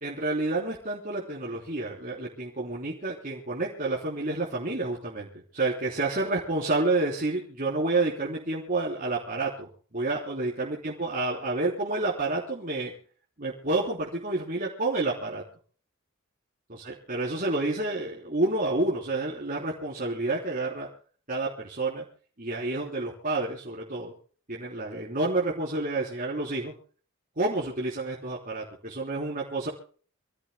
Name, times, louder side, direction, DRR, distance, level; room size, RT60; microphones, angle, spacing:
voice 1, 0.0-5.3 5.5-9.7 9.9-12.9 13.4-15.4 16.7-20.9 21.3-22.0 22.4-24.1 24.5-26.7 27.4-29.7, right 2 dB, 45° right, -4 dB, 3.5 m, -29 dB
28.0 x 16.0 x 2.2 m, 0.44 s
head